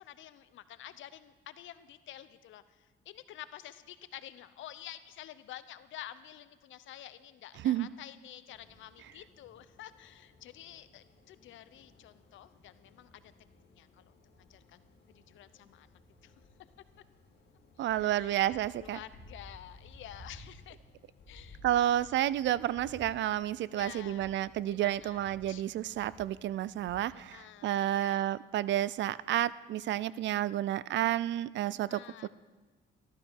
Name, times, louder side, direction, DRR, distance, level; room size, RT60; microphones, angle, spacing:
voice 1, 0.0-13.3 13.7-16.3 17.9-20.8 21.3-22.2 22.5-22.6 23.7-24.4 24.7-25.6 27.1-28.4 31.9-32.3, left 12 dB, 75° left, 14 dB, 0.7 m, -50 dB
sound 1, 8.5-27.1, left 2 dB, 55° left, 2.4 m, -57 dB
voice 2, 17.8-19.0 21.6-32.3, right 12 dB, 65° right, 19 dB, 0.4 m, -30 dB
14.0 x 12.5 x 4.7 m, 1.3 s
cardioid pair, 90°, 20 cm